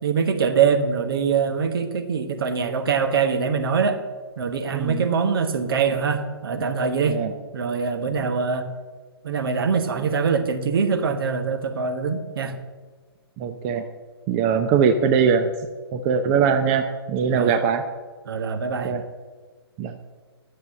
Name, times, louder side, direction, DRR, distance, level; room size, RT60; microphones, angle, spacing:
voice 1, 0.0-4.0 4.4-7.2 7.5-8.7 9.2-12.5 17.3-17.5 18.3-18.9, right 6 dB, 60° right, 7 dB, 1.4 m, -23 dB
voice 2, 4.7-5.1 7.1-7.3 8.2-8.3 13.4-13.9 14.3-15.5 15.9-17.8 18.8-19.0 19.8-19.9, right 6 dB, 30° right, 7 dB, 0.7 m, -21 dB
10.5 x 7.4 x 7.6 m, 1.4 s
hypercardioid pair, 135°, 14 cm